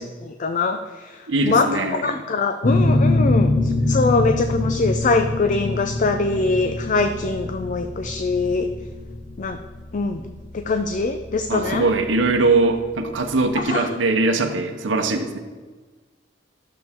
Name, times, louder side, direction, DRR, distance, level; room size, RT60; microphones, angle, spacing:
voice 1, 0.0-1.2 1.5-8.7 9.4-9.6 9.9-11.9 13.6-14.0, left 3 dB, 45° left, 7 dB, 0.4 m, -23 dB
voice 2, 1.3-2.2 11.5-15.4, right 3 dB, 80° right, 3 dB, 0.9 m, -21 dB
sound 1, 2.6-12.0, left 2 dB, 65° left, 1.4 m, -23 dB
12.0 x 7.0 x 3.6 m, 1.4 s
head